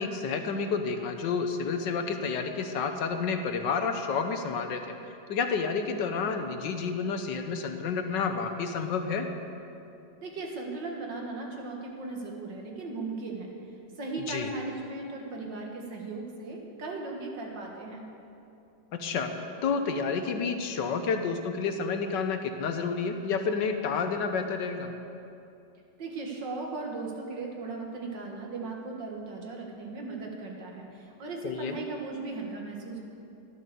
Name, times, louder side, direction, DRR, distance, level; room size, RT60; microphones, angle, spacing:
voice 1, 0.0-4.8 5.3-9.3 14.3-14.5 18.9-19.3 19.6-24.9 31.4-31.8, left 5 dB, 75° left, 6 dB, 1.6 m, -30 dB
voice 2, 10.2-13.5 14.0-18.0 26.0-33.0, right 3 dB, 75° right, 0 dB, 2.4 m, -37 dB
12.5 x 11.0 x 6.9 m, 2.7 s
omnidirectional pair, 2.0 m